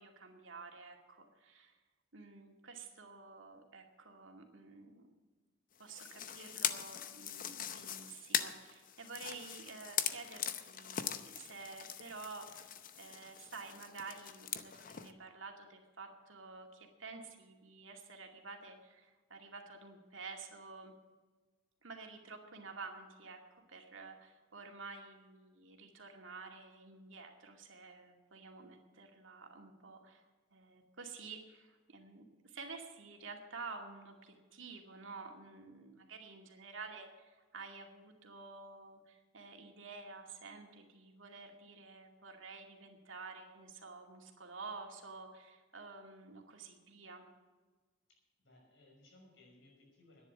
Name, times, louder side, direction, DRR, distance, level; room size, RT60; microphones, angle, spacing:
voice 1, 0.0-1.8 2.1-5.1 5.8-20.9 21.8-30.2 30.5-47.2, right 4 dB, 80° right, 3 dB, 2.3 m, -50 dB
sound 1, 5.9-15.1, left 9 dB, 45° left, 0.7 m, -41 dB
voice 2, 48.1-50.3, left 2 dB, 65° left, 0 dB, 5.7 m, -63 dB
11.0 x 10.5 x 8.4 m, 1.3 s
head